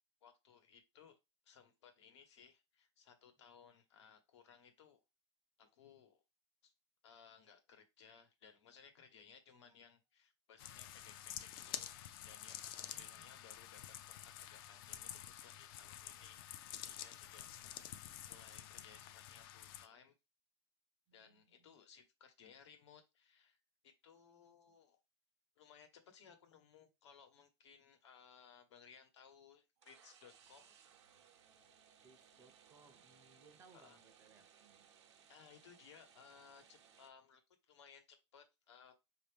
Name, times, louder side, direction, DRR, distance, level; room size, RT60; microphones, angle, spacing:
voice 1, 0.2-1.2 1.4-5.0 5.6-6.2 6.6-6.7 7.0-20.1 21.1-23.6 23.8-25.0 25.6-30.8 33.7-34.0 35.3-37.4 37.7-38.9, left 7 dB, 85° left, 1.2 m, -62 dB
sound 1, 10.6-19.9, left 11 dB, 55° left, 0.5 m, -49 dB
voice 2, 12.9-13.4 17.4-17.5 21.1-21.7 24.4-24.5 32.0-34.9, right 4 dB, 20° right, 0.5 m, -67 dB
sound 2, 29.8-37.1, right 8 dB, 80° right, 0.8 m, -65 dB
4.8 x 2.8 x 3.4 m
supercardioid pair, 150°, 14 cm